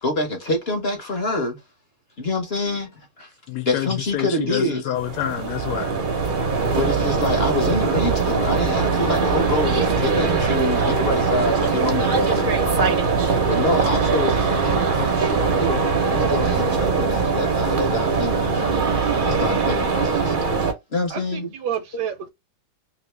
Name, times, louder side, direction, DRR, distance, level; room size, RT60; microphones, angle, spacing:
voice 1, 0.0-1.6 2.2-3.3 3.6-4.8 6.0-6.1 6.7-13.0 13.5-15.8 16.1-18.9 19.2-20.3 20.9-21.5, left 2 dB, 45° left, 0.9 m, -26 dB
voice 2, 3.5-5.9, left 12 dB, 75° left, 1.1 m, -28 dB
sound 1, 5.0-20.7, right 5 dB, 45° right, 0.6 m, -21 dB
voice 3, 21.1-22.3, right 9 dB, 70° right, 1.1 m, -29 dB
2.9 x 2.7 x 3.2 m
omnidirectional pair, 2.0 m